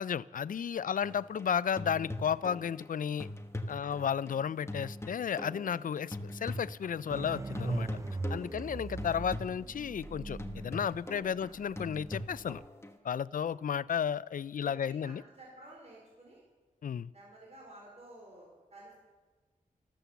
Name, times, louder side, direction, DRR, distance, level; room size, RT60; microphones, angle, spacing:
voice 1, 0.0-3.3 3.7-7.9 8.3-12.6 13.0-15.2 16.8-17.1, left 8 dB, 70° left, 19 dB, 0.4 m, -33 dB
sound 1, 1.0-7.3 7.5-13.0, left 1 dB, 20° left, 1.2 m, -43 dB
sound 2, 7.1-12.6, right 3 dB, 20° right, 0.4 m, -40 dB
voice 2, 8.3-8.7 9.0-9.1 11.4-11.5 13.3-13.4 14.6-16.4 16.9-19.0, right 1 dB, 50° right, -3 dB, 4.3 m, -54 dB
14.0 x 13.0 x 6.9 m, 1.3 s
wide cardioid pair, 90°, 15 cm